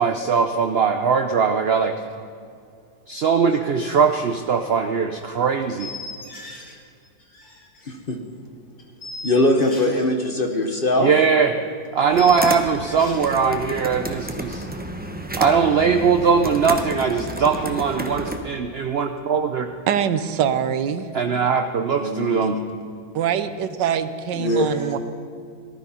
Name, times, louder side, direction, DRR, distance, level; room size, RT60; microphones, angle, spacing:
voice 1, 0.0-1.9 3.1-5.9 11.0-11.5 11.9-14.7 15.4-19.7 21.1-22.6, right 6 dB, 60° right, 6 dB, 0.6 m, -20 dB
sound 1, 3.8-4.2 4.4-4.7 5.8-6.8 7.0-7.9 8.8-10.1 10.4-11.0 11.2-11.3 12.2-13.3, left 3 dB, 55° left, 2.7 m, -38 dB
voice 2, 7.9-8.2 9.2-11.1 22.0-22.6 24.3-24.7, left 1 dB, 40° left, 4 dB, 1.0 m, -21 dB
sound 2, 12.1-18.4, right 1 dB, 10° right, 0.5 m, -31 dB
voice 3, 19.9-21.1 23.1-25.0, right 8 dB, 80° right, 12 dB, 1.4 m, -23 dB
18.5 x 12.5 x 5.6 m, 2.4 s
omnidirectional pair, 1.9 m